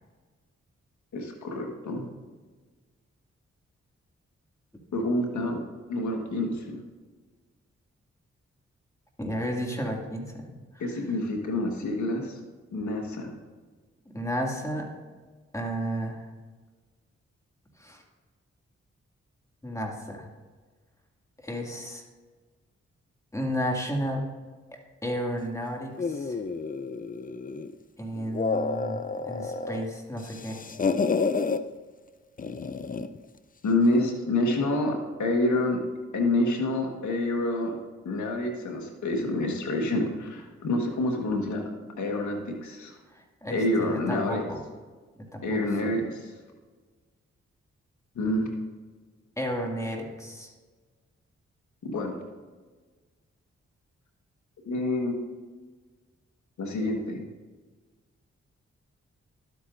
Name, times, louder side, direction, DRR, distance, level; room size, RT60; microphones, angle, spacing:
voice 1, 1.1-2.0 4.9-5.6 5.9-6.8 10.8-12.4 12.7-13.3 33.6-35.8 36.1-37.7 38.0-41.7 42.0-43.0 43.5-44.4 45.4-46.3 48.1-48.5 51.8-52.2 54.7-55.2 56.6-57.2, left 1 dB, 80° left, 2 dB, 1.6 m, -27 dB
voice 2, 9.2-11.1 14.1-14.9 15.5-16.3 17.8-18.0 19.6-20.3 21.4-22.0 23.3-24.2 25.0-26.4 28.0-30.7 43.1-44.6 45.2-45.9 49.4-50.5, equal, 10° left, 1 dB, 2.3 m, -33 dB
sound 1, 26.0-27.7 28.2-29.8 30.2-31.6 32.4-33.2, left 4 dB, 30° left, 0.5 m, -30 dB
12.0 x 8.3 x 2.6 m, 1.4 s
supercardioid pair, 40°, 29 cm